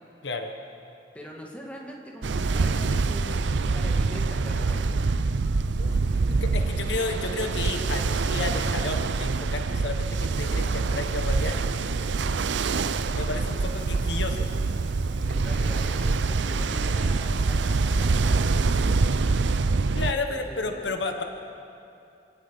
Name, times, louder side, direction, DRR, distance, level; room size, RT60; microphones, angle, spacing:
voice 1, 1.1-4.9 5.6-6.4 6.7-6.8 15.1-18.3 20.1-20.9, equal, 10° left, -1 dB, 2.3 m, -42 dB
Ocean, 2.2-20.1, right 3 dB, 75° right, 0.6 m, -25 dB
voice 2, 6.4-11.6 13.1-14.5 19.9-21.2, left 3 dB, 75° left, 5 dB, 1.3 m, -32 dB
27.5 x 17.5 x 5.4 m, 2.7 s
head